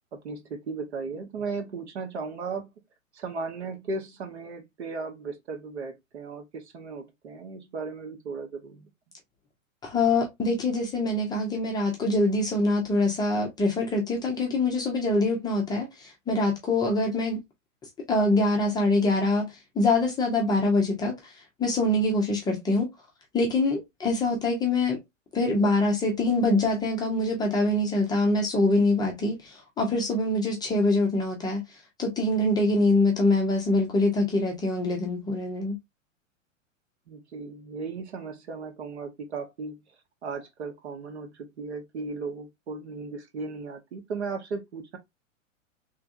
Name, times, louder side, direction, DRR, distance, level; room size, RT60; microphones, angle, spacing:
voice 1, 0.1-2.7 3.1-8.9 37.1-39.8 40.2-45.0, right 4 dB, 55° right, 1.1 m, -36 dB
voice 2, 9.8-17.4 18.1-19.4 19.8-21.3 21.6-22.9 23.3-25.0 25.3-31.6 32.0-35.7, left 2 dB, 10° left, 0.6 m, -24 dB
3.5 x 3.1 x 2.5 m
figure-of-eight pair, 105°, 40 cm